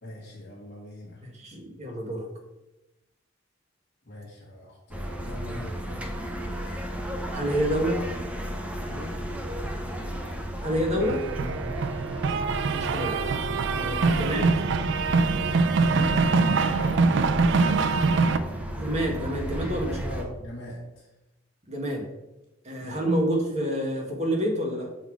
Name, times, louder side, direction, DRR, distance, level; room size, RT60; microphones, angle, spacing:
voice 1, 0.0-1.2 4.0-6.2 8.9-9.2 11.4-11.8 13.7-14.0 15.9-17.7 18.2-18.6 19.7-21.1 22.8-23.1, equal, 50° left, -5 dB, 1.4 m, -41 dB
voice 2, 1.2-2.3 7.3-8.1 10.6-11.2 12.7-13.2 13.7-14.5 18.8-20.3 21.7-22.1 22.6-24.9, equal, 35° right, 0 dB, 1.5 m, -28 dB
sound 1, 4.9-20.2, right 1 dB, 5° right, 0.7 m, -34 dB
sound 2, 11.0-18.4, right 4 dB, 60° right, 0.4 m, -24 dB
6.8 x 4.1 x 4.6 m, 0.97 s
head